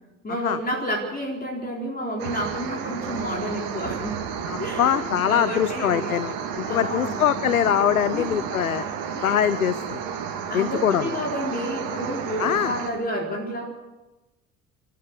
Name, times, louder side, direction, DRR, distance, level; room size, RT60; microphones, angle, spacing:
voice 1, 0.2-4.2 4.6-6.2 6.6-7.3 8.1-8.4 9.0-9.3 10.5-13.7, equal, 20° left, 0 dB, 4.1 m, -30 dB
sound 1, 2.2-12.9, right 7 dB, 60° right, 3.7 m, -32 dB
voice 2, 4.5-8.9 9.2-10.0 10.5-11.2 12.4-12.8, left 9 dB, 80° left, 17 dB, 0.7 m, -23 dB
30.0 x 13.0 x 6.7 m, 1.1 s
figure-of-eight pair, 55°, 42 cm